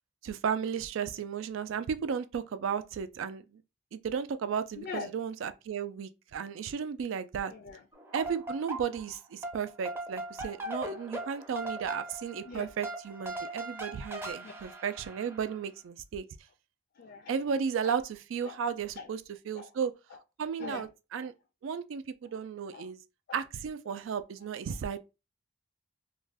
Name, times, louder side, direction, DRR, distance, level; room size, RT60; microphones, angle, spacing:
voice 1, 0.2-3.6 3.9-7.5 8.1-16.2 17.3-19.2 19.5-19.9 20.4-21.3 21.6-23.0 23.3-25.0, right 7 dB, 90° right, 0.3 m, -34 dB
voice 2, 4.8-5.1 7.5-7.8 12.4-12.7 14.4-14.5 17.0-17.3 17.8-17.9 18.4-18.6 19.0-19.1 19.5-19.7 20.6-20.9 21.2-21.3 22.7-22.9 23.3-23.4 23.9-24.0, left 5 dB, 55° left, 0.4 m, -42 dB
sound 1, 7.9-9.1 9.4-15.6, right 1 dB, 10° right, 0.5 m, -40 dB
2.4 x 2.2 x 3.3 m
head